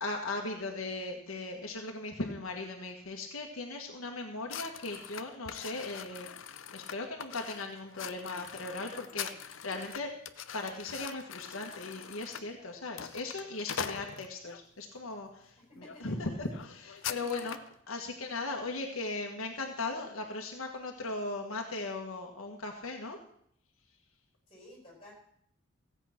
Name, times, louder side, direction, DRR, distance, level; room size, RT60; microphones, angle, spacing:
voice 1, 0.0-6.3 6.7-10.1 10.5-17.6 17.9-23.2, left 2 dB, 85° left, 1 dB, 1.6 m, -38 dB
sound 1, 4.5-14.6 15.2-15.5 15.8-16.0 16.2-17.7, left 8 dB, 70° left, 0.6 m, -43 dB
voice 2, 15.7-16.3 17.0-17.6 24.5-25.1, left 1 dB, 25° left, -2 dB, 5.4 m, -54 dB
15.5 x 8.1 x 5.9 m, 0.66 s
head